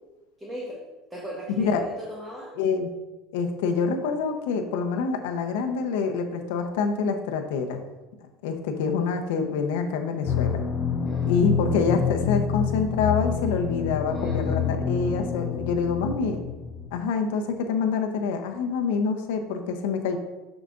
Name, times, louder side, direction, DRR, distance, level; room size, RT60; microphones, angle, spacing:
voice 1, 0.4-0.8 1.1-2.5 11.0-11.4 14.1-14.7, equal, 10° right, -4 dB, 1.3 m, -37 dB
voice 2, 1.5-1.8 2.6-2.9 3.3-7.8 8.4-10.6 11.3-16.4 16.9-20.2, left 5 dB, 90° left, 5 dB, 0.9 m, -26 dB
sound 1, 10.3-16.9, left 7 dB, 35° left, 0.5 m, -27 dB
10.5 x 5.0 x 2.6 m, 1.1 s
cardioid pair, 140°, 0 cm